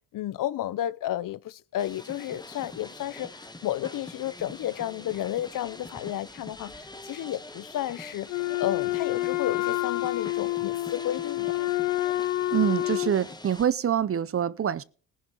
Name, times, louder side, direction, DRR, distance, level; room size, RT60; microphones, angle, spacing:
voice 1, 0.1-8.3 8.6-11.5, left 12 dB, 50° left, 0.7 m, -32 dB
sound 1, 1.8-13.7, left 2 dB, 10° left, 1.2 m, -44 dB
Wind instrument woodwind instrument, 8.3-13.2, left 16 dB, 85° left, 1.2 m, -28 dB
voice 2, 12.5-14.8, right 9 dB, 35° right, 0.7 m, -25 dB
19.0 x 11.0 x 3.0 m
supercardioid pair, 65°, 41 cm